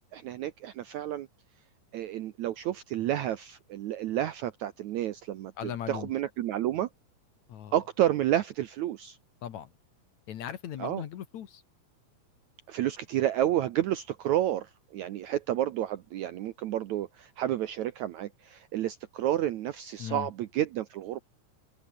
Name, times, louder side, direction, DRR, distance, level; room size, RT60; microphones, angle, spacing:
voice 1, 0.1-1.3 1.9-6.9 7.7-9.2 10.8-11.0 12.7-21.2, right 12 dB, 75° right, 1.8 m, -30 dB
voice 2, 5.6-6.1 7.5-7.7 9.4-9.7 10.3-11.6 20.0-20.3, left 10 dB, 60° left, 2.4 m, -38 dB
omnidirectional pair, 4.3 m